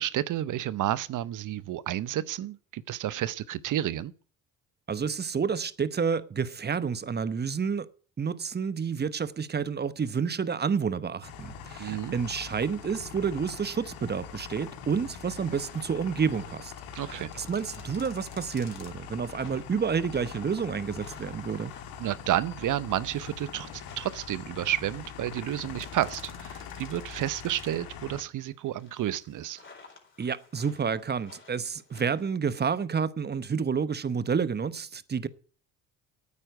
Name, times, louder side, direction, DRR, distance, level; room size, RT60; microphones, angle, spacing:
voice 1, 0.0-4.1 11.8-12.2 16.9-17.3 22.0-29.6, right 12 dB, 55° right, 0.8 m, -31 dB
voice 2, 4.9-7.9 8.2-16.7 17.1-21.7 30.2-35.3, right 6 dB, 25° right, 0.9 m, -29 dB
sound 1, 11.2-28.2, left 7 dB, 70° left, 2.0 m, -43 dB
sound 2, 15.3-27.9 28.4-32.3, left 4 dB, 35° left, 4.4 m, -54 dB
9.1 x 8.6 x 9.2 m
supercardioid pair, 65°, 36 cm